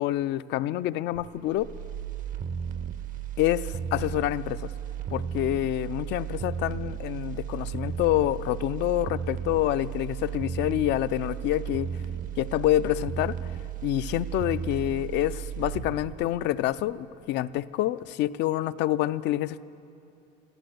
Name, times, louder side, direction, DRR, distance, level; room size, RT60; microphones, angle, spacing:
voice 1, 0.0-1.7 3.4-4.7 5.1-11.9 12.4-13.3 13.8-19.6, left 14 dB, 55° left, 16 dB, 0.4 m, -27 dB
sound 1, 1.1-17.2 17.6-17.7, right 8 dB, 40° right, 0.6 m, -35 dB
14.0 x 12.0 x 7.8 m, 2.7 s
cardioid pair, 115°, 21 cm